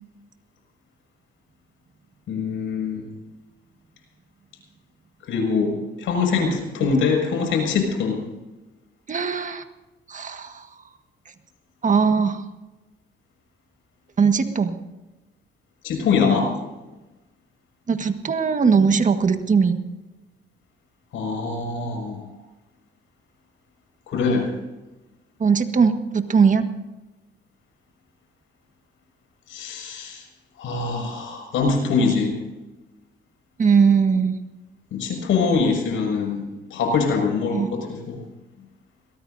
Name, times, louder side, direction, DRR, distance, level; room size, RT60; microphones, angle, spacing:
voice 1, 2.3-3.0 5.3-8.2 15.8-16.5 21.1-22.2 24.1-24.5 29.5-30.2 30.6-32.3 34.9-38.2, left 5 dB, 80° left, 2 dB, 6.4 m, -23 dB
voice 2, 9.1-9.6 10.1-10.7 11.8-12.4 14.2-14.7 17.9-19.8 25.4-26.7 33.6-34.4 37.5-37.7, right 5 dB, 40° right, 7 dB, 1.6 m, -19 dB
22.5 x 19.0 x 2.8 m, 1.0 s
cardioid pair, 90°, 20 cm